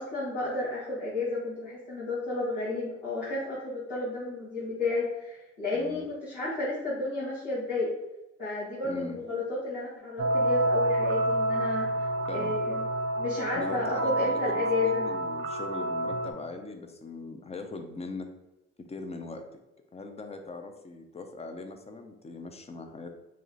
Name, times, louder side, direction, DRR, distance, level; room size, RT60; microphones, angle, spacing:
voice 1, 0.0-7.9 8.4-12.8 13.2-15.1, left 3 dB, 90° left, -10 dB, 1.5 m, -32 dB
voice 2, 5.7-6.0 8.8-9.2 12.3-12.5 13.5-18.3 18.8-19.4 19.9-23.1, left 3 dB, 20° left, 6 dB, 0.5 m, -40 dB
sound 1, 10.2-16.3, right 1 dB, 45° right, 0.6 m, -28 dB
3.1 x 2.9 x 3.8 m, 0.99 s
cardioid pair, 90°, 30 cm